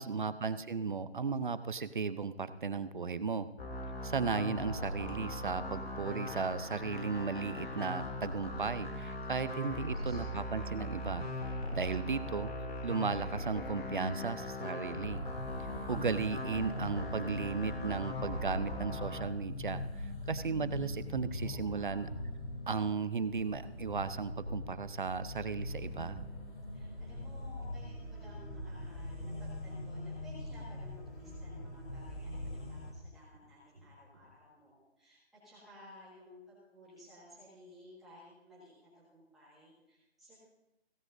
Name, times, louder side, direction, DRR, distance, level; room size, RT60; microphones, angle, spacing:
voice 1, 0.0-3.5 4.0-11.3 11.7-12.5 12.8-15.3 15.9-22.1 22.7-26.2, right 5 dB, 50° right, 13 dB, 0.6 m, -35 dB
sound 1, 3.6-19.2, left 1 dB, 65° left, 2.8 m, -40 dB
voice 2, 9.4-10.2 21.4-22.1 26.7-35.2 35.4-40.4, left 1 dB, ahead, -12 dB, 1.6 m, -57 dB
sound 2, 14.9-32.9, left 1 dB, 90° left, 3.5 m, -42 dB
sound 3, 20.1-21.1 22.4-23.4 23.6-26.6 27.6-27.8 28.3-28.6 29.0-29.3 29.7-29.9 30.7-32.2 32.4-34.3, right 1 dB, 25° right, 2.4 m, -61 dB
16.5 x 14.0 x 2.6 m, 0.95 s
hypercardioid pair, 175°, 33 cm